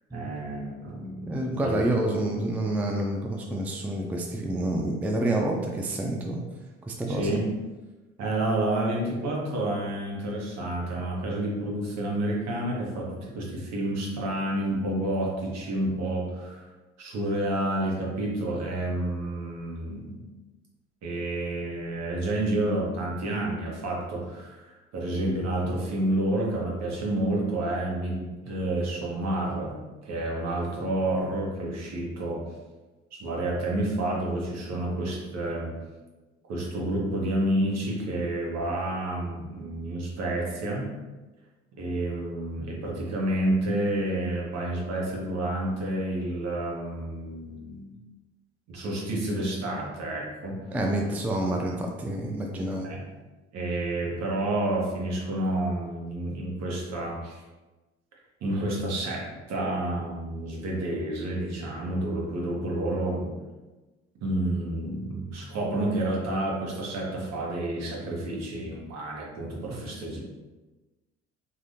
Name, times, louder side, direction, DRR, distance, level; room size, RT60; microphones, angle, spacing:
voice 1, 0.1-1.7 7.1-7.5 8.2-16.7 17.0-20.2 21.0-29.8 30.0-32.4 33.1-35.7 36.5-40.9 41.7-47.9 48.7-50.6 52.8-53.0 53.5-57.4 58.4-63.3 64.2-70.2, right 1 dB, 55° right, -3 dB, 1.1 m, -29 dB
voice 2, 1.3-6.4 6.8-7.4 50.7-52.9, right 1 dB, 5° right, 1 dB, 0.4 m, -28 dB
3.3 x 2.6 x 2.7 m, 1.2 s
hypercardioid pair, 65°, 31 cm